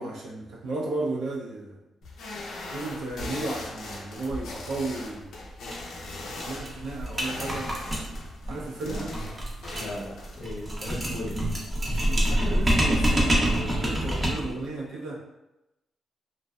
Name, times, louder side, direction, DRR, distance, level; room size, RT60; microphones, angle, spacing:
voice 1, 0.0-1.8 2.7-5.3 6.2-7.7 8.5-9.2 11.8-15.2, right 2 dB, 90° right, -3 dB, 0.6 m, -34 dB
sound 1, 2.0-10.5, left 2 dB, 80° left, 0.5 m, -39 dB
sound 2, 5.6-5.8 6.1-6.2 6.4-14.6, equal, 25° right, 0.6 m, -26 dB
voice 2, 9.8-11.3, left 1 dB, 45° left, -7 dB, 0.7 m, -37 dB
2.5 x 2.3 x 2.3 m, 0.93 s
cardioid pair, 100°, 0 cm